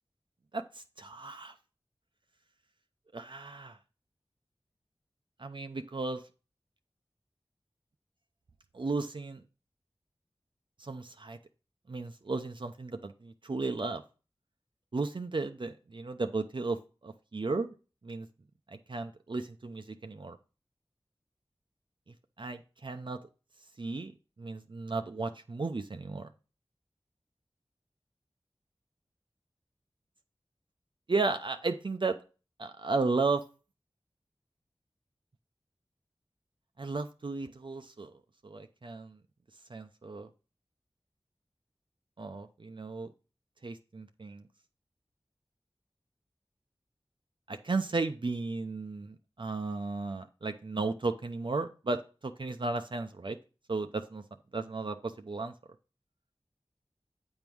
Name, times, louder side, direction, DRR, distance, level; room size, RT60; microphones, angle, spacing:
voice 1, 0.5-1.5 3.1-3.8 5.4-6.2 8.7-9.4 10.8-11.4 11.9-14.0 14.9-17.7 18.0-18.3 18.7-20.4 22.4-23.2 23.8-24.1 24.4-26.3 31.1-32.2 32.6-33.4 36.8-38.1 38.4-39.2 39.7-40.3 42.2-43.1 43.6-44.4 47.5-53.4 53.7-54.2 54.5-55.5, right 3 dB, 55° right, 6 dB, 0.6 m, -34 dB
8.8 x 3.6 x 6.0 m, 0.34 s
wide cardioid pair, 40°, 10 cm